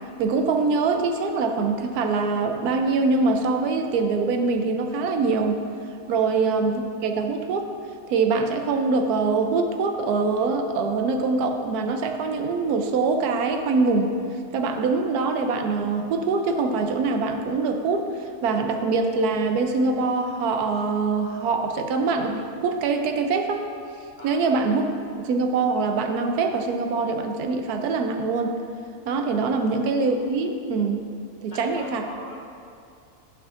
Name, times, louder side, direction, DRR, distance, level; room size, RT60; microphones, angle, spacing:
voice 1, 0.2-5.6 6.1-7.6 8.1-14.2 14.5-23.7 24.2-28.6 29.1-31.0 31.4-32.0, right 4 dB, 90° right, 5 dB, 1.1 m, -24 dB
voice 2, 24.2-24.5 31.5-32.3, left 2 dB, 35° left, -4 dB, 1.0 m, -40 dB
11.0 x 5.2 x 2.5 m, 2.5 s
omnidirectional pair, 1.6 m